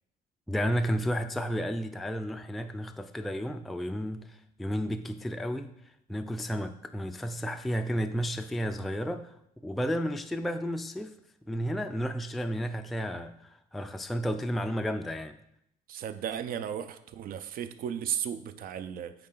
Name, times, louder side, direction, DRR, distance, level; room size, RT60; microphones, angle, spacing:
voice 1, 0.5-5.7 6.1-9.3 9.6-11.1 11.5-15.4, equal, ahead, 0.3 m, -32 dB
voice 2, 15.9-19.1, right 9 dB, 60° right, 0.5 m, -35 dB
8.2 x 3.2 x 3.8 m
cardioid pair, 110°, 17 cm